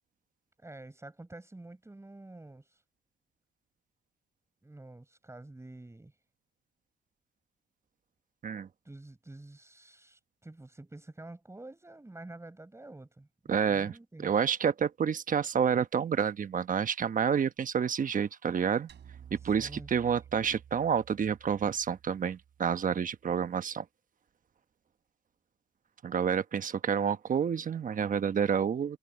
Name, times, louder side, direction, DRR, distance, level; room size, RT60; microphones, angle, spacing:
voice 1, 0.6-2.8 4.6-6.1 8.8-14.3 19.4-19.9, right 2 dB, 15° right, 6.4 m, -48 dB
voice 2, 13.5-13.9 14.2-18.9 19.4-23.8 26.0-29.0, right 7 dB, 40° right, 1.1 m, -29 dB
sound 1, 18.9-23.3, right 8 dB, 60° right, 7.0 m, -53 dB
cardioid pair, 90°, 20 cm